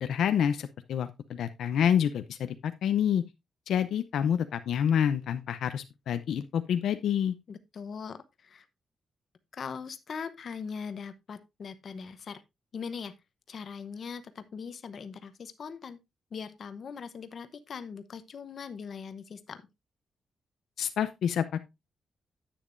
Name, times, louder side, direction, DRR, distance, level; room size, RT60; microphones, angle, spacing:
voice 1, 0.0-3.2 3.7-7.3 20.8-21.6, left 8 dB, 75° left, 0.6 m, -28 dB
voice 2, 7.5-8.7 9.5-12.4 12.7-13.1 13.5-16.0 16.3-19.6, left 6 dB, 45° left, 0.8 m, -40 dB
10.0 x 8.7 x 2.5 m
wide cardioid pair, 175°, 0 cm